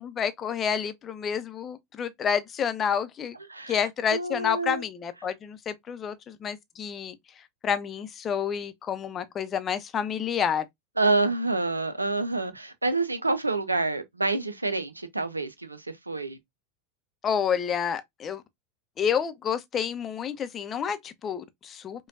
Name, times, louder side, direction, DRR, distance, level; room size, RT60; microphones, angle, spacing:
voice 1, 0.0-3.4 3.7-7.2 7.6-10.6 17.2-18.4 19.0-22.1, left 7 dB, 30° left, 0.6 m, -29 dB
voice 2, 4.1-4.8 11.0-16.4, right 3 dB, 85° right, 0.5 m, -27 dB
5.0 x 2.3 x 2.5 m
figure-of-eight pair, 85°, 0 cm